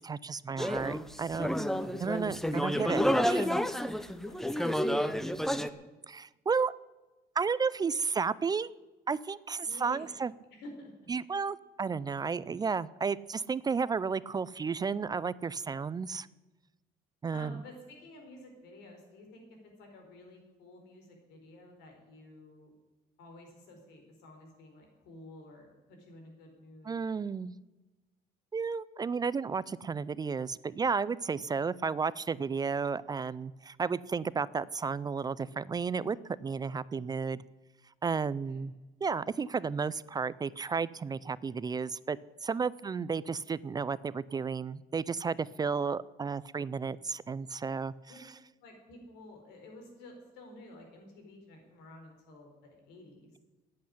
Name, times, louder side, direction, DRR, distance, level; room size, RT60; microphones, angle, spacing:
voice 1, 0.0-1.5 2.0-3.5 6.1-6.7 7.4-8.7 9.1-10.3 11.1-16.3 17.2-17.6 26.8-27.5 28.5-37.4 38.0-38.7 39.0-47.9, right 5 dB, 25° right, 19 dB, 0.4 m, -33 dB
sound 1, 0.6-5.7, equal, ahead, 0.7 m, -30 dB
voice 2, 2.7-3.3 4.2-5.7 9.6-10.0 10.5-10.9 17.3-19.4 19.8-22.7 23.2-27.0 38.4-38.6 48.1-48.2 48.6-53.3, left 1 dB, 90° left, 2 dB, 4.3 m, -51 dB
11.5 x 8.6 x 10.0 m, 1.1 s
cardioid pair, 110°, 17 cm